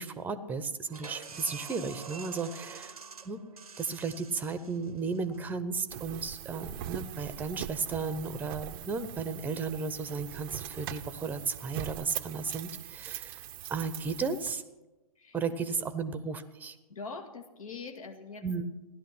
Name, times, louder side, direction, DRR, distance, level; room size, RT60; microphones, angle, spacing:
voice 1, 0.0-3.0 3.2-3.4 3.8-13.4 13.7-14.6 15.3-16.8 18.4-18.6, right 4 dB, 10° right, 12 dB, 0.8 m, -34 dB
sound 1, 0.9-6.3, right 5 dB, 85° right, 0.8 m, -47 dB
sound 2, 5.9-14.5, right 13 dB, 35° right, 0.6 m, -41 dB
voice 2, 16.9-18.4, left 4 dB, 70° left, 4 dB, 1.9 m, -43 dB
16.0 x 11.5 x 6.1 m, 1.1 s
figure-of-eight pair, 115°, 19 cm